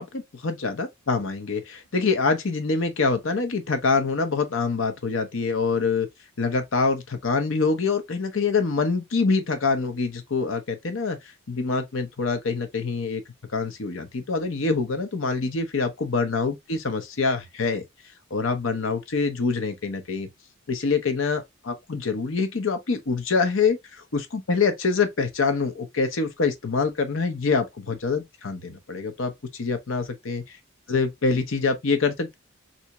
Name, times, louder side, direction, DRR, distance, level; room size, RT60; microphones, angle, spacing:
voice 1, 0.0-6.1 6.4-11.2 11.5-13.2 13.5-17.8 18.3-20.3 20.7-29.3 29.6-30.4 30.9-32.3, left 4 dB, 70° left, 0.8 m, -25 dB
3.4 x 2.7 x 2.9 m
head